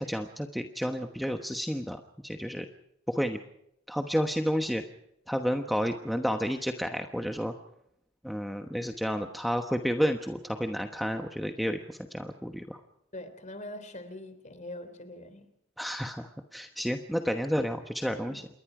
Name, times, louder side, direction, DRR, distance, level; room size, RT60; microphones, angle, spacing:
voice 1, 0.0-2.7 3.1-3.4 3.9-4.8 5.3-7.5 8.2-12.8 15.8-18.5, equal, ahead, 5 dB, 1.1 m, -31 dB
voice 2, 13.1-15.5 18.2-18.4, left 1 dB, 35° left, 11 dB, 3.3 m, -43 dB
28.0 x 22.0 x 4.9 m, 0.76 s
head